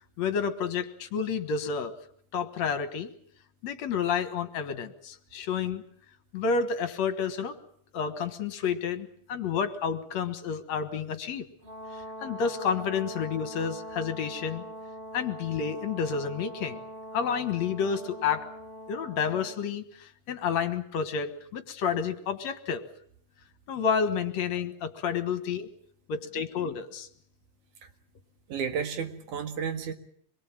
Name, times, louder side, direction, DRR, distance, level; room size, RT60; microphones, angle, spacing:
voice 1, 0.2-1.9 2.3-3.1 3.6-5.8 6.3-7.6 7.9-11.5 12.2-14.6 15.1-16.8 17.1-18.5 18.9-22.8 23.7-25.7 26.1-27.1, left 6 dB, 65° left, 9 dB, 2.6 m, -30 dB
Brass instrument, 11.6-19.6, right 1 dB, 20° right, 5.2 m, -42 dB
voice 2, 28.5-29.9, right 7 dB, 80° right, 6 dB, 3.3 m, -32 dB
26.0 x 22.5 x 7.5 m, 0.63 s
omnidirectional pair, 3.5 m